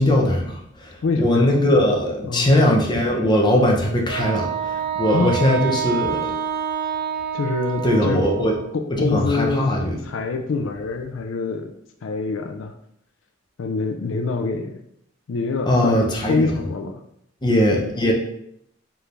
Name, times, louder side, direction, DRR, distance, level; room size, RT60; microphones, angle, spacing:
voice 1, 0.0-6.4 7.8-8.5 8.9-10.0 15.7-16.5 17.4-18.1, left 1 dB, 20° left, 0 dB, 0.7 m, -20 dB
voice 2, 1.0-1.5 2.2-2.5 5.0-5.4 7.3-8.2 8.7-9.6 10.0-11.7 12.0-12.7 13.6-14.8 15.3-17.0, left 3 dB, 70° left, 5 dB, 0.4 m, -25 dB
Wind instrument woodwind instrument, 4.1-8.7, right 8 dB, 50° right, 0.5 m, -27 dB
4.8 x 3.3 x 2.5 m, 0.73 s
head